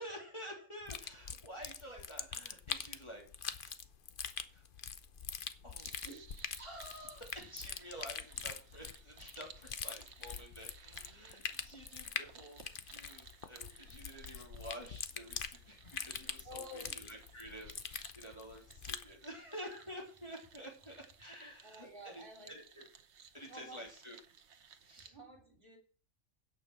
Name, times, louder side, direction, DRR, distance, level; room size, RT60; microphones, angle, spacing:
voice 1, 0.0-3.3 4.5-4.6 5.6-6.0 6.6-22.8 23.3-24.2 24.8-25.2, equal, 20° left, -1 dB, 3.2 m, -50 dB
sound 1, 0.9-19.1, left 7 dB, 45° left, 0.9 m, -44 dB
sound 2, 5.8-25.1, right 7 dB, 60° right, 1.2 m, -59 dB
voice 2, 16.4-17.0 21.6-22.5 23.4-23.8 25.1-25.8, left 1 dB, 40° right, 1 dB, 3.5 m, -51 dB
16.5 x 5.9 x 6.0 m, 0.42 s
omnidirectional pair, 1.4 m